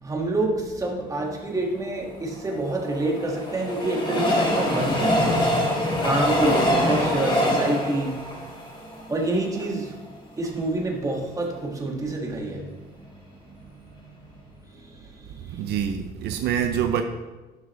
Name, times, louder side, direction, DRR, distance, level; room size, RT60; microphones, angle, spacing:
voice 1, 0.0-5.3 6.0-10.1 10.4-14.2 14.7-15.6, right 2 dB, 20° right, 0 dB, 1.8 m, -28 dB
Train, 2.4-9.6 10.1-10.2 10.4-10.5, left 1 dB, 30° left, 3.0 m, -24 dB
voice 2, 15.3-17.0, right 9 dB, 75° right, 6 dB, 0.7 m, -26 dB
12.0 x 6.2 x 3.2 m, 1.2 s
cardioid pair, 110°, 17 cm